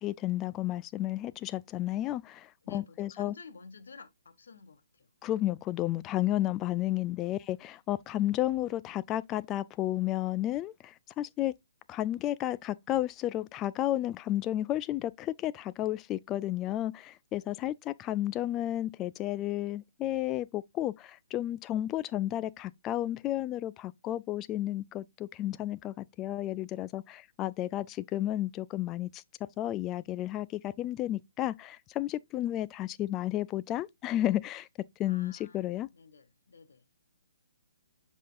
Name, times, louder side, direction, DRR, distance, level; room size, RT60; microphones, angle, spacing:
voice 1, 0.0-3.3 5.2-11.5 11.9-29.2 29.6-34.7 35.0-35.9, left 14 dB, 20° left, 0.3 m, -32 dB
voice 2, 2.6-5.1 17.5-17.8 27.7-27.8 35.0-36.9, left 4 dB, 60° left, 1.2 m, -52 dB
7.5 x 5.4 x 2.4 m
figure-of-eight pair, 130°, 0 cm